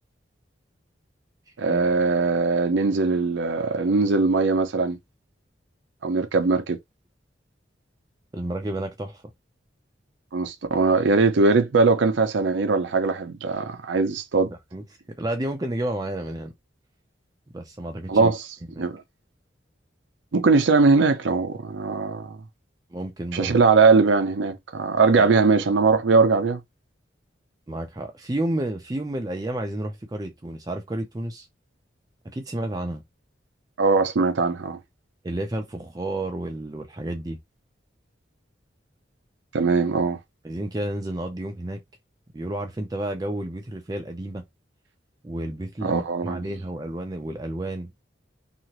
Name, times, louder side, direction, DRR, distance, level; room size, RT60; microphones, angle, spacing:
voice 1, 1.6-5.0 6.0-6.8 10.3-14.5 18.1-18.5 18.8-19.0 20.3-22.4 23.3-26.6 33.8-34.8 39.5-40.2 45.8-46.4, right 4 dB, 80° right, 0.5 m, -20 dB
voice 2, 8.3-9.2 14.7-16.5 17.5-18.3 18.7-18.9 22.9-23.6 25.2-25.3 27.7-31.5 32.2-33.0 35.2-37.4 40.4-41.8 42.3-44.4 45.2-47.9, right 1 dB, 20° right, 0.4 m, -31 dB
2.8 x 2.5 x 2.9 m
head